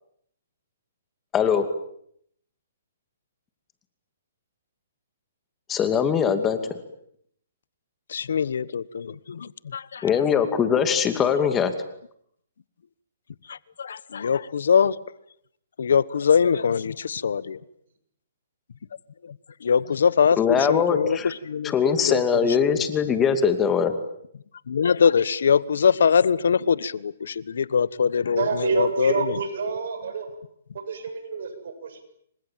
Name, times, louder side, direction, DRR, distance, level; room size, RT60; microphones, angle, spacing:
voice 1, 1.3-1.7 5.7-6.6 10.0-11.7 20.4-21.3 21.6-23.9, left 7 dB, 15° left, 9 dB, 2.5 m, -21 dB
voice 2, 8.1-10.0 13.5-15.0 15.8-17.6 19.6-22.2 22.7-22.8 24.7-29.1, left 6 dB, 75° left, 19 dB, 1.2 m, -22 dB
voice 3, 28.3-30.3 30.9-32.0, right 5 dB, 65° right, 8 dB, 7.8 m, -27 dB
29.0 x 25.0 x 7.6 m, 0.70 s
hypercardioid pair, 155°, 0 cm